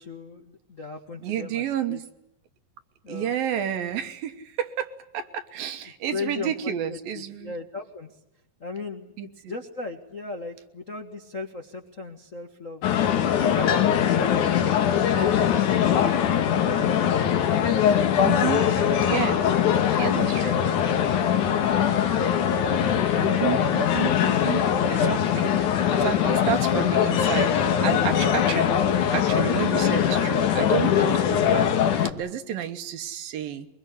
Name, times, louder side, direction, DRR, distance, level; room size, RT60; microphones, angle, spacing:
voice 1, 0.0-2.0 3.0-3.3 6.1-8.1 8.6-12.8 13.3-13.8 14.1-17.2 19.1-19.2 19.5-22.2, left 3 dB, 45° left, 2 dB, 0.9 m, -38 dB
voice 2, 1.2-2.0 3.1-7.5 9.2-9.5 18.2-18.7 19.0-19.4 19.9-20.6 23.2-28.8 29.1-33.7, right 9 dB, 75° right, 8 dB, 3.0 m, -31 dB
sound 1, 12.8-32.1, left 9 dB, 65° left, 2.6 m, -22 dB
23.0 x 22.5 x 9.9 m, 0.85 s
omnidirectional pair, 4.2 m